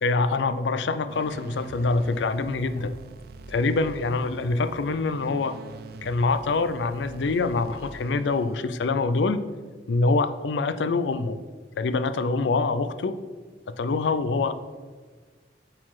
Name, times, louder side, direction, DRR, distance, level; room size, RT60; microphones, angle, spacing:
voice 1, 0.0-2.9 3.5-5.6 6.0-9.4 9.9-11.4 11.8-13.1 13.8-14.5, left 3 dB, 75° left, 11 dB, 0.4 m, -25 dB
sound 1, 1.1-8.8, right 4 dB, 60° right, 0.4 m, -45 dB
8.3 x 4.0 x 4.8 m, 1.5 s
head